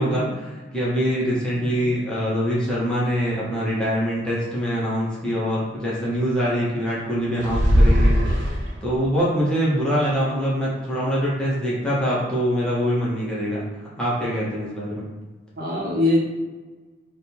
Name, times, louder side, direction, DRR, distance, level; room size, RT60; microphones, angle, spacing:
voice 1, 0.0-13.6 14.0-15.0, equal, 5° left, -8 dB, 0.7 m, -24 dB
voice 2, 1.5-1.9 15.6-16.2, left 2 dB, 50° right, -4 dB, 0.9 m, -23 dB
sound 1, 7.4-9.0, equal, 80° right, 0.7 m, -18 dB
3.4 x 2.2 x 4.3 m, 1.3 s
head